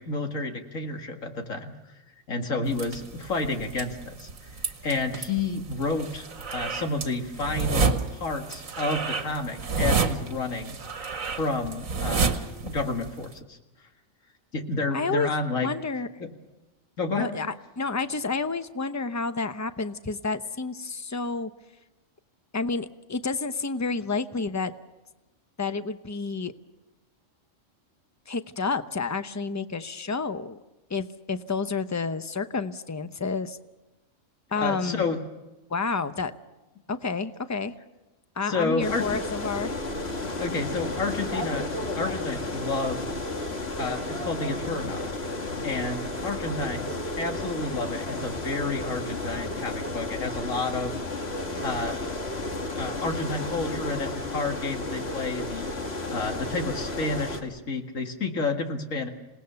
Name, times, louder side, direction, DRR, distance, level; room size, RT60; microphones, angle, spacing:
voice 1, 0.0-1.7 2.3-4.3 4.8-6.3 6.5-10.8 11.3-12.4 12.6-13.6 14.5-15.7 16.2-16.3 17.0-17.3 34.6-35.2 38.5-39.1 40.4-41.7 41.9-43.1 43.8-45.1 45.6-46.9 47.2-51.0 51.6-52.0 52.8-55.7 56.1-59.1, left 3 dB, 85° left, 4 dB, 2.4 m, -30 dB
sound 1, 2.7-13.3, right 4 dB, 85° right, 1.7 m, -30 dB
voice 2, 14.9-15.3 15.6-16.1 17.2-21.5 22.5-24.7 25.6-26.5 28.3-30.6 30.9-33.6 34.5-35.0 35.7-36.3 36.9-37.7 38.4-39.7, left 4 dB, 15° left, 10 dB, 0.7 m, -30 dB
sound 2, 38.8-57.4, left 2 dB, 50° left, 2.1 m, -32 dB
27.0 x 18.5 x 6.9 m, 1.0 s
omnidirectional pair, 1.3 m